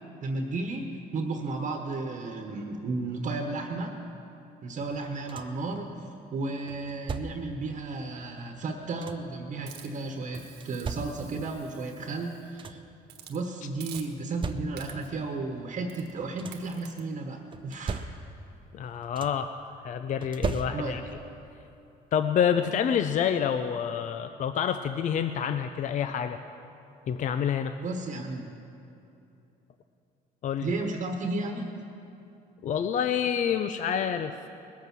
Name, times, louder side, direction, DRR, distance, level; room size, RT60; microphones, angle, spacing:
voice 1, 0.2-3.9 4.6-12.8 13.3-18.0 20.7-21.0 27.8-28.4 30.6-31.8, right 3 dB, 45° right, 3 dB, 1.3 m, -33 dB
sound 1, 4.9-5.7 6.7-7.6 8.6-9.4 10.3-11.5 12.1-12.2 12.4-13.0 13.9-15.1 16.0-16.8 17.5-18.6 18.8-19.6 20.2-21.2 22.5-22.6 23.1-23.3, right 4 dB, 30° right, 0.6 m, -38 dB
Hiss, 9.7-12.5 13.1-13.4 13.8-14.4 14.8-15.2 15.9-16.1 16.5-17.0, right 9 dB, 75° right, 1.4 m, -49 dB
voice 2, 18.7-19.6 19.8-21.0 22.1-26.4 27.1-27.7 30.4-30.7 32.6-34.3, left 8 dB, 50° left, 9 dB, 0.5 m, -27 dB
20.0 x 8.4 x 6.1 m, 2.8 s
cardioid pair, 110°, 17 cm